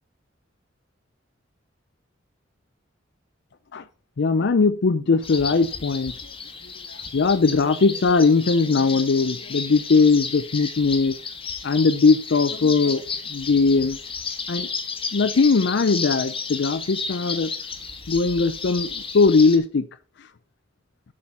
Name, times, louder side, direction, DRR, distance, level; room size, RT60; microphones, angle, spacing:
voice 1, 4.2-6.1 7.1-11.2 11.6-13.0 13.3-14.0 14.5-14.7 15.1-17.5 18.1-18.9 19.1-19.8, left 4 dB, 65° left, 0.5 m, -19 dB
sound 1, 5.2-19.6, left 5 dB, 30° left, 1.4 m, -33 dB
8.5 x 6.3 x 5.3 m
head